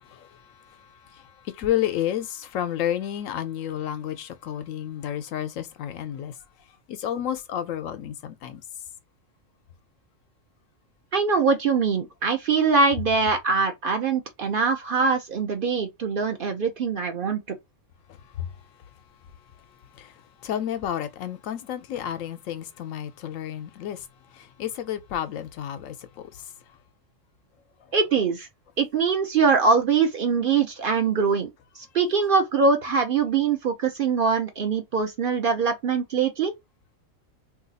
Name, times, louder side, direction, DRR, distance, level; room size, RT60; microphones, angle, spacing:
voice 1, 0.1-6.3 6.9-8.6 18.4-18.5 19.9-20.1 20.4-24.1 24.3-26.4, left 10 dB, 80° left, 1.0 m, -31 dB
voice 2, 11.1-17.6 27.9-28.5 28.8-31.5 31.8-36.5, right 5 dB, 55° right, 0.6 m, -23 dB
2.8 x 2.4 x 3.9 m
omnidirectional pair, 1.3 m